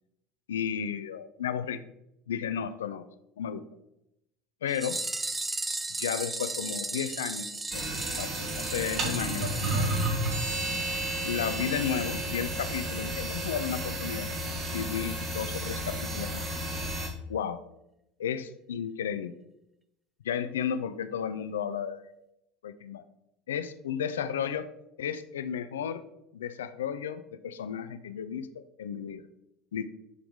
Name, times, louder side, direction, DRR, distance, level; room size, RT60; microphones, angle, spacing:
voice 1, 0.5-1.8 2.3-3.1 3.4-3.7 4.6-5.0 6.0-7.8 8.2-10.0 11.2-14.3 14.7-16.5 17.3-17.6 18.2-19.3 20.2-22.0 22.6-23.0 23.5-24.7 25.0-26.0 26.3-29.3 29.7-29.9, left 8 dB, 70° left, 12 dB, 0.3 m, -33 dB
sound 1, 4.7-10.8 11.1-11.2 11.5-11.6 12.0-12.1 12.4-12.5, right 2 dB, 15° right, 0.3 m, -36 dB
sound 2, 7.7-17.1, right 1 dB, 35° right, 1.3 m, -32 dB
sound 3, 10.3-14.6, right 2 dB, 60° right, 1.2 m, -38 dB
7.8 x 3.4 x 3.7 m, 0.84 s
figure-of-eight pair, 70°, 0 cm